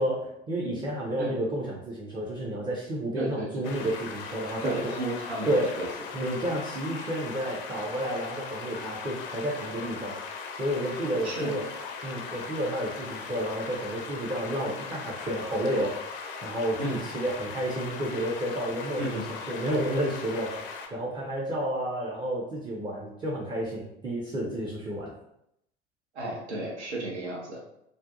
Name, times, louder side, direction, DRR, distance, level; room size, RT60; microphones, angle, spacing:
voice 1, 0.0-4.9 5.5-5.8 6.1-10.2 10.6-11.7 12.0-15.9 16.4-25.1, right 1 dB, 15° right, -5 dB, 0.4 m, -31 dB
voice 2, 3.2-3.7 4.6-5.9 11.2-11.6 16.8-17.1 19.0-19.3 26.1-27.6, right 1 dB, 80° right, -3 dB, 0.6 m, -33 dB
sound 1, 3.6-20.9, left 5 dB, 55° left, 0.5 m, -39 dB
2.4 x 2.2 x 2.5 m, 0.78 s
figure-of-eight pair, 70°, 34 cm